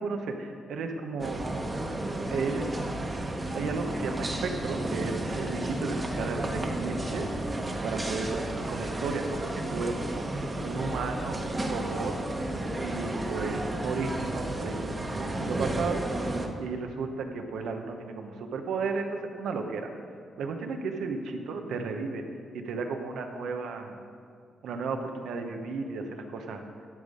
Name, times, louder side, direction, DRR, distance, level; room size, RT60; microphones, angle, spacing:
voice 1, 0.0-1.5 2.3-2.7 3.5-7.3 7.8-10.2 10.6-12.1 12.8-19.9 20.4-22.2 22.5-24.0 24.6-26.6, right 4 dB, 80° right, 5 dB, 0.9 m, -34 dB
sound 1, 1.2-16.5, right 1 dB, 25° right, 1.1 m, -32 dB
12.0 x 5.3 x 5.2 m, 2.2 s
cardioid pair, 70°, 0 cm